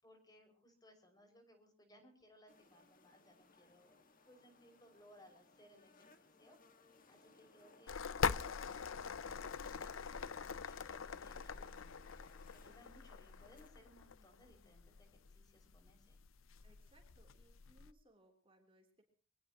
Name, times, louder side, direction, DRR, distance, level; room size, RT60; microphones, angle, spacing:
voice 1, 0.0-6.6 7.0-12.0 12.5-16.2, equal, 20° left, 5 dB, 6.0 m, -65 dB
sound 1, 2.5-13.7, left 3 dB, 45° left, 1.8 m, -65 dB
sound 2, 7.9-17.9, left 6 dB, 85° left, 0.7 m, -43 dB
voice 2, 16.6-19.0, right 1 dB, 25° right, 2 dB, 3.5 m, -69 dB
24.5 x 19.0 x 3.0 m, 0.40 s
head